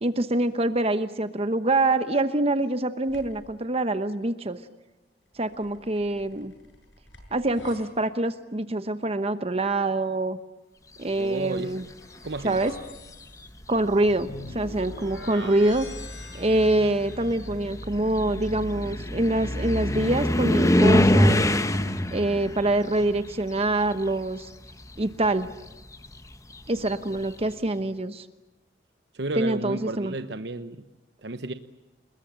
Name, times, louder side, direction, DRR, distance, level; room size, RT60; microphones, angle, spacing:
voice 1, 0.0-4.6 5.4-6.5 7.3-10.4 11.0-11.8 12.4-12.7 13.7-15.9 16.3-21.4 22.1-24.5 25.0-25.5 26.7-28.3 29.4-30.1, right 2 dB, 35° right, 11 dB, 1.0 m, -25 dB
sound 1, 3.1-3.5 5.4-7.8 11.3-17.7, left 2 dB, 90° left, 7.9 m, -45 dB
voice 2, 11.2-11.8 12.2-12.6 15.3-15.7 29.1-30.9 31.2-31.5, right 2 dB, 65° right, 9 dB, 1.0 m, -33 dB
sound 2, 12.2-12.8 13.8-13.9 14.5-24.4 24.6-27.3, left 1 dB, 20° left, 1.3 m, -26 dB
29.5 x 21.0 x 8.8 m, 1.1 s
head